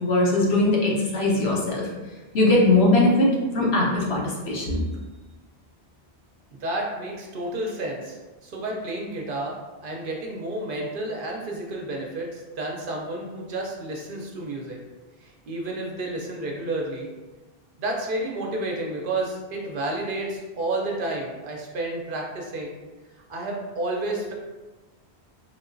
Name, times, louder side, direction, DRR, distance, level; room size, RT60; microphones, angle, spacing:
voice 1, 0.0-1.8 2.3-3.3 3.5-4.8, left 2 dB, 75° left, -4 dB, 1.1 m, -20 dB
voice 2, 6.6-9.6 9.8-14.8 15.2-17.1 17.8-22.7 23.3-24.3, right 2 dB, 60° right, -1 dB, 0.7 m, -31 dB
3.6 x 2.8 x 2.5 m, 1.2 s
omnidirectional pair, 1.1 m